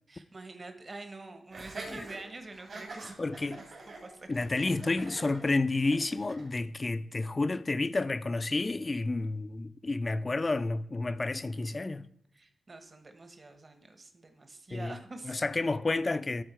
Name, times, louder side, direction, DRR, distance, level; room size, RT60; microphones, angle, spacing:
voice 1, 0.1-3.3 4.0-4.7 12.3-15.3, right 2 dB, 40° right, 1.3 m, -46 dB
Laughter, 1.5-6.5, right 2 dB, 65° right, 3.4 m, -45 dB
voice 2, 3.2-3.6 4.3-12.0 14.7-15.0 15.2-16.4, left 3 dB, 35° left, 0.5 m, -30 dB
11.5 x 4.4 x 4.5 m
cardioid pair, 65°, 0 cm